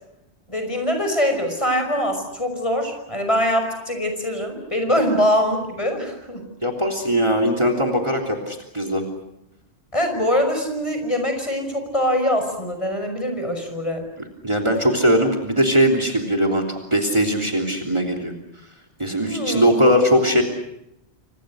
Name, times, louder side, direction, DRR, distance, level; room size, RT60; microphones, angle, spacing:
voice 1, 0.5-6.4 9.9-14.0 19.2-19.7, equal, 30° left, 5 dB, 5.7 m, -23 dB
voice 2, 6.6-9.0 14.4-18.3 19.0-20.4, equal, 25° right, 2 dB, 3.4 m, -20 dB
29.0 x 26.5 x 6.4 m, 0.82 s
omnidirectional pair, 1.1 m